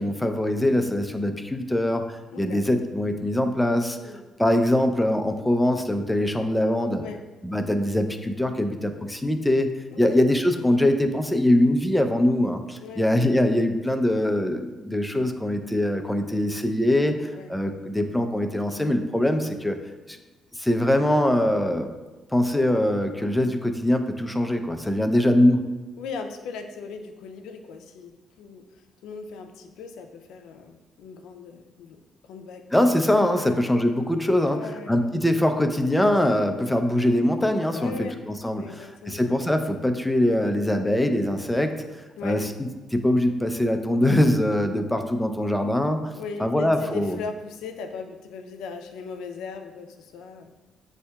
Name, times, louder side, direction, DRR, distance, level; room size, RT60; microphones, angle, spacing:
voice 1, 0.0-4.0 4.4-7.0 7.4-9.7 10.0-19.8 20.1-20.2 20.6-21.9 22.3-25.7 32.7-41.7 42.2-46.1 46.4-47.2, left 1 dB, 5° left, 6 dB, 0.4 m, -23 dB
voice 2, 2.3-2.6 4.0-4.2 7.0-7.2 9.9-10.2 12.8-13.0 17.3-17.5 26.0-28.7 29.0-32.7 33.3-33.6 34.5-34.9 37.7-38.2 38.6-39.3 42.2-42.4 46.1-50.5, left 5 dB, 90° left, 6 dB, 0.4 m, -38 dB
7.4 x 2.7 x 2.2 m, 1.2 s
cardioid pair, 90°, 0 cm